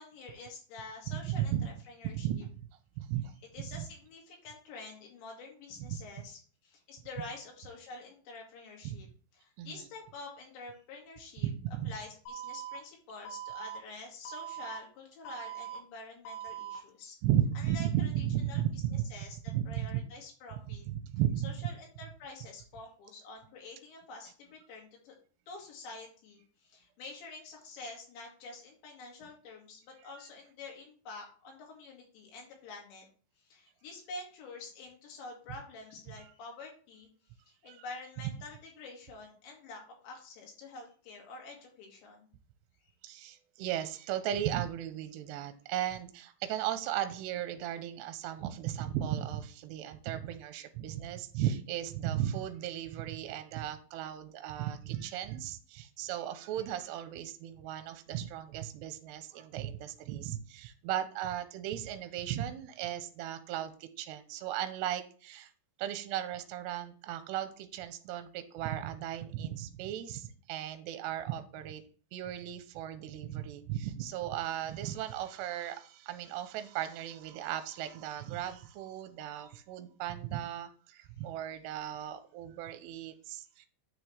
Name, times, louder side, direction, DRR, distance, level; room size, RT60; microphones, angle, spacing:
voice 1, 0.0-2.3 3.5-9.1 9.4-11.5 11.8-17.2 17.6-18.6 19.1-19.4 19.7-20.8 21.4-25.1 25.5-33.1 33.4-37.1 37.5-42.3 42.8-42.9, left 3 dB, 90° left, -1 dB, 4.6 m, -48 dB
voice 2, 1.1-1.7 2.2-2.5 3.0-3.3 3.6-3.9 5.9-6.0 8.8-9.0 9.6-9.8 11.4-11.9 17.2-19.0 19.5-20.0 20.9-21.5 37.7-37.8 43.0-65.5 65.8-71.8 72.1-83.7, right 11 dB, 85° right, 9 dB, 2.8 m, -36 dB
Alarm, 12.3-12.8 13.3-13.8 14.3-14.8 15.3-15.8 16.3-16.8, right 9 dB, 65° left, 3.1 m, -41 dB
9.4 x 6.3 x 3.3 m, 0.42 s
omnidirectional pair, 5.0 m